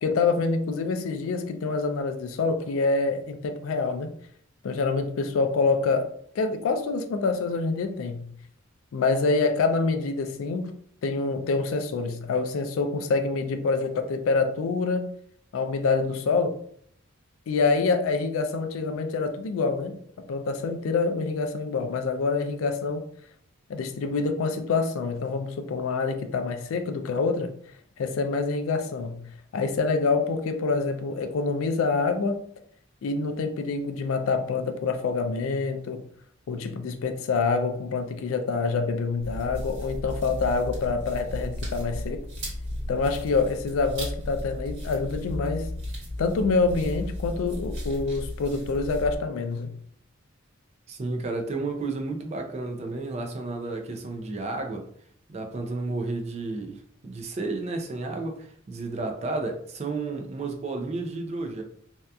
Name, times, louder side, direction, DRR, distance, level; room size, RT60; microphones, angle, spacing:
voice 1, 0.0-4.1 4.6-6.1 6.4-8.3 8.9-10.7 11.0-15.1 15.5-16.6 17.5-20.0 20.3-23.0 23.7-27.5 28.0-29.3 29.5-32.4 33.0-36.0 36.5-42.2 42.9-45.7 46.2-49.7, left 4 dB, 75° left, 0.3 m, -26 dB
sound 1, 39.2-49.2, left 1 dB, 60° right, 1.3 m, -34 dB
voice 2, 50.9-54.9 55.3-61.6, right 3 dB, 30° right, 0.3 m, -32 dB
2.7 x 2.3 x 2.2 m
head